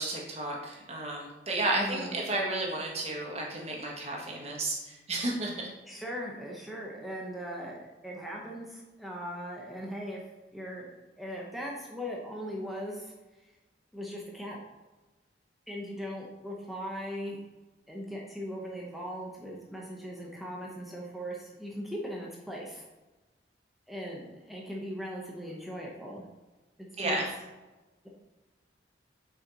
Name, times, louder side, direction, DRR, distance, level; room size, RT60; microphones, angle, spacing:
voice 1, 0.0-5.7 27.0-27.3, right 2 dB, 35° right, -2 dB, 1.4 m, -32 dB
voice 2, 1.7-2.2 5.8-10.2 10.5-10.9 11.2-13.1 13.9-14.6 15.7-17.4 17.9-22.8 23.9-26.2 27.0-27.2, equal, ahead, -3 dB, 0.7 m, -39 dB
6.3 x 4.5 x 3.9 m, 1.1 s
head